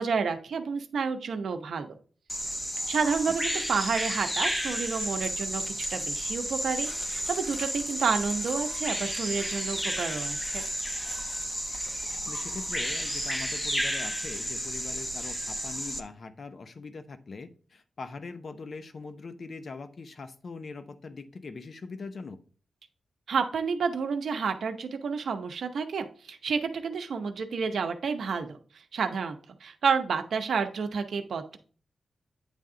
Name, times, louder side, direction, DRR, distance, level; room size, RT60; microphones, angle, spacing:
voice 1, 0.0-1.9 2.9-10.6 23.3-31.6, right 5 dB, 80° right, 7 dB, 0.8 m, -30 dB
Bird vocalization bird call bird song, 2.3-16.0, equal, 10° left, 0.8 m, -32 dB
voice 2, 12.3-22.4, left 4 dB, 55° left, 9 dB, 0.7 m, -42 dB
9.1 x 3.5 x 3.7 m, 0.41 s
wide cardioid pair, 95°, 0 cm